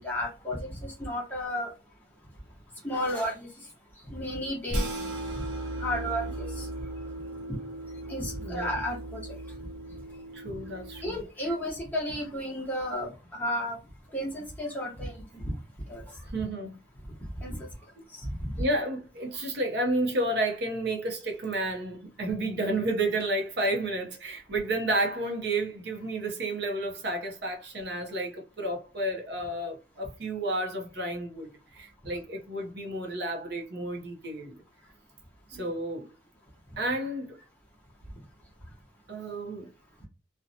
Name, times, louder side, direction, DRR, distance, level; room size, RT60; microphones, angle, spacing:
voice 1, 0.0-1.7 2.8-3.5 4.1-4.9 5.8-6.7 8.1-9.2 11.0-13.8 14.1-15.5 15.9-16.0 17.4-17.7 18.4-18.6 35.5-35.6, equal, 10° left, 0.9 m, -33 dB
sound 1, 4.7-11.2, right 1 dB, 90° right, 0.9 m, -36 dB
voice 2, 10.3-11.2 16.3-16.8 18.6-34.6 35.5-36.1 36.8-37.4 39.1-39.7, right 1 dB, 60° right, 0.6 m, -31 dB
2.7 x 2.1 x 2.6 m
head